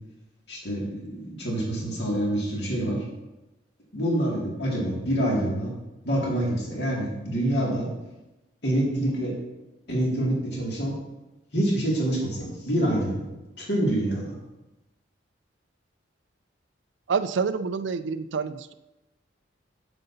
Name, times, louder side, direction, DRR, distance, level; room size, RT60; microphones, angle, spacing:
voice 1, 0.5-3.0 3.9-5.7 6.0-7.9 8.6-9.3 9.9-11.0 11.5-13.3 13.6-14.4, right 1 dB, 60° left, -4 dB, 2.3 m, -26 dB
voice 2, 17.1-18.7, right 5 dB, 70° right, 12 dB, 0.4 m, -27 dB
9.2 x 7.8 x 2.7 m, 0.99 s
head